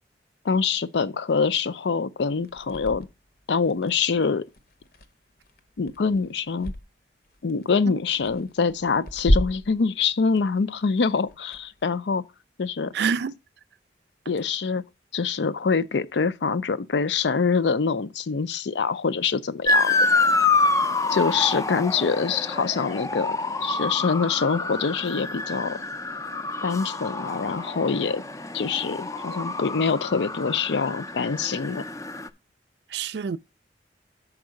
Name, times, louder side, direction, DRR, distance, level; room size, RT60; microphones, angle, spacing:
voice 1, 0.4-3.1 3.5-4.4 5.8-6.7 7.4-12.2 12.6-12.9 14.3-14.8 15.1-20.1 21.1-25.8 26.6-28.2 28.5-31.8, left 5 dB, 75° left, 0.5 m, -25 dB
sound 1, 2.3-6.9 7.2-11.8, equal, 60° left, 0.9 m, -31 dB
voice 2, 12.9-13.3 32.9-33.4, right 6 dB, 65° right, 0.4 m, -26 dB
Motor vehicle (road) / Siren, 19.7-32.3, left 3 dB, 20° left, 0.4 m, -27 dB
5.9 x 4.7 x 6.4 m
head